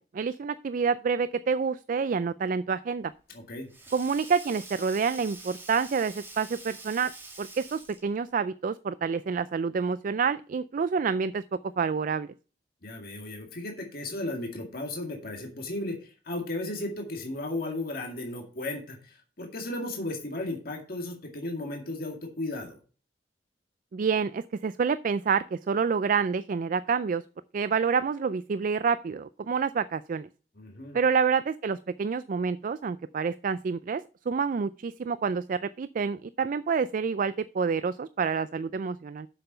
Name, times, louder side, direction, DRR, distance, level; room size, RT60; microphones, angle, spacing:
voice 1, 0.1-3.1 3.9-7.1 7.4-11.4 11.8-12.3 23.9-27.2 27.5-30.3 30.9-39.3, right 5 dB, 50° right, 15 dB, 0.4 m, -28 dB
Sink (filling or washing), 3.1-8.2, right 2 dB, 15° right, 2.0 m, -46 dB
voice 2, 3.3-3.7 12.8-22.8 30.6-31.0, left 2 dB, 55° left, 1 dB, 2.1 m, -35 dB
7.7 x 6.8 x 5.5 m, 0.38 s
head